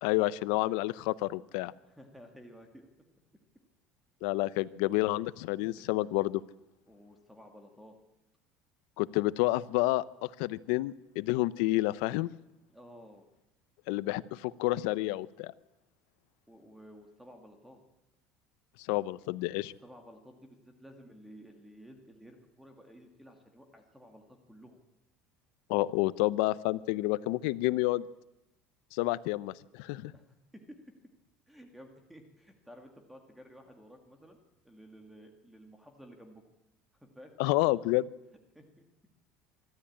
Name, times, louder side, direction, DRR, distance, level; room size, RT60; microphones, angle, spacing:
voice 1, 0.0-1.7 4.2-6.4 9.0-12.3 13.9-15.5 18.9-19.7 25.7-28.0 28.9-30.1 37.4-38.0, left 18 dB, 80° left, 18 dB, 0.7 m, -29 dB
voice 2, 1.8-2.9 5.8-5.9 6.9-7.9 12.7-13.2 16.5-17.8 19.8-24.8 30.1-30.3 30.7-30.8 31.5-34.4 34.6-36.4 37.0-37.3 38.5-38.9, equal, 5° right, 4 dB, 2.0 m, -53 dB
24.5 x 13.0 x 8.7 m, 0.93 s
cardioid pair, 155°, 4 cm